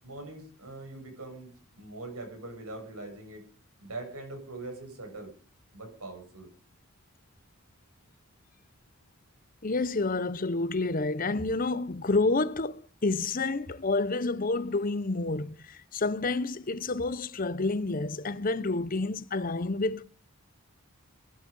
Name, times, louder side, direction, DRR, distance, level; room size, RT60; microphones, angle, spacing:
voice 1, 0.0-3.5 3.8-5.3 5.7-6.5, right 2 dB, 85° right, 7.7 m, -42 dB
voice 2, 9.6-20.0, left 3 dB, 40° left, 0.8 m, -29 dB
22.0 x 12.0 x 5.4 m
head